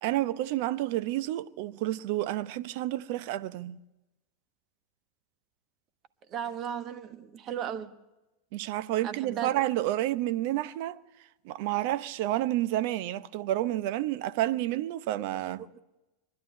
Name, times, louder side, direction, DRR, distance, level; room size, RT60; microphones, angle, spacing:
voice 1, 0.0-3.8 8.5-11.0 11.4-15.6, right 14 dB, 60° right, 0.7 m, -30 dB
voice 2, 6.3-8.0 9.0-9.5 15.6-15.8, right 9 dB, 40° right, 1.4 m, -36 dB
23.0 x 11.5 x 10.0 m
hypercardioid pair, 90°, 0 cm